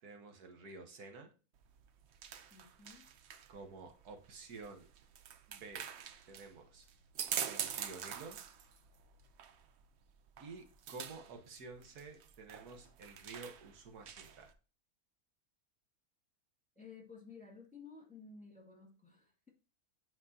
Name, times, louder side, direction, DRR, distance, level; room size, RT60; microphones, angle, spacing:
voice 1, 0.0-1.3 3.5-4.9 5.5-5.9 6.3-6.9 7.5-8.4 10.4-14.5, right 3 dB, 85° right, 5 dB, 1.7 m, -51 dB
sound 1, 1.6-14.5, right 8 dB, 60° right, 0.7 m, -46 dB
voice 2, 2.5-3.1 16.8-19.5, left 5 dB, 5° left, 0 dB, 1.8 m, -54 dB
9.1 x 4.4 x 2.7 m, 0.35 s
omnidirectional pair, 1.6 m